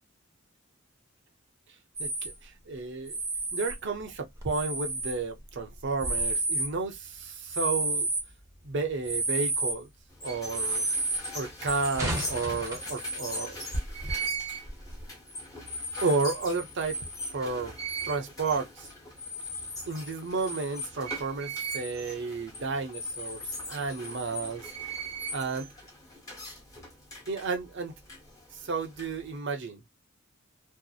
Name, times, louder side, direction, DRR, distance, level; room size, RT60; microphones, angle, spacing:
sound 1, 2.0-2.3 3.1-3.8 4.4-5.2 5.8-6.7 7.5-8.2 9.0-9.8 10.5-11.2 11.7-12.9 13.4-13.5 13.7-14.1 14.7-15.0, right 2 dB, 15° right, 0.8 m, -30 dB
voice 1, 2.0-3.2 3.5-8.1 8.6-9.9 10.2-10.8 11.3-13.6 16.0-17.0 17.3-17.7 18.0-18.9 19.9-24.7 25.3-25.7 27.3-27.9 28.5-29.8, right 4 dB, 60° right, 0.7 m, -32 dB
sound 2, 10.1-29.4, right 1 dB, 15° left, 1.0 m, -39 dB
2.7 x 2.0 x 2.2 m
head